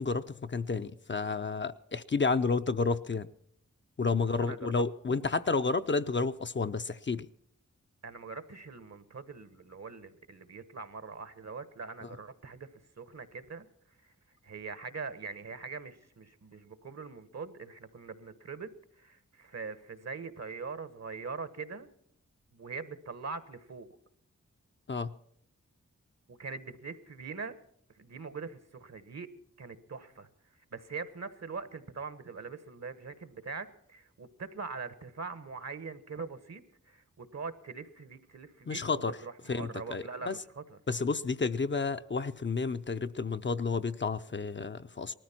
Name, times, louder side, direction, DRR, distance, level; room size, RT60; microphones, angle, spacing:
voice 1, 0.0-3.3 4.0-7.3 24.9-25.2 38.7-39.2 39.5-40.3 40.9-45.1, left 4 dB, 40° left, 0.6 m, -31 dB
voice 2, 4.4-4.8 5.1-5.3 8.0-21.9 22.5-24.0 26.3-27.6 27.9-29.3 29.6-40.8, right 4 dB, 60° right, 1.2 m, -43 dB
19.0 x 13.5 x 4.3 m
cardioid pair, 50°, 29 cm